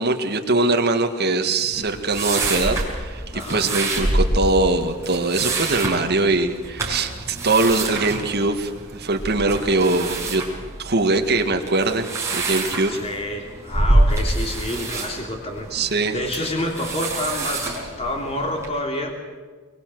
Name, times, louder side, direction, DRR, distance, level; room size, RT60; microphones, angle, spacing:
voice 1, 0.0-10.4 10.8-12.1 12.3-13.0 15.7-16.1, right 2 dB, 45° right, 5 dB, 1.8 m, -22 dB
sound 1, 1.7-18.7, right 2 dB, 15° right, 5.9 m, -26 dB
voice 2, 3.3-3.7 12.8-19.2, left 1 dB, 30° left, 1 dB, 3.2 m, -28 dB
23.5 x 22.5 x 7.8 m, 1.5 s
head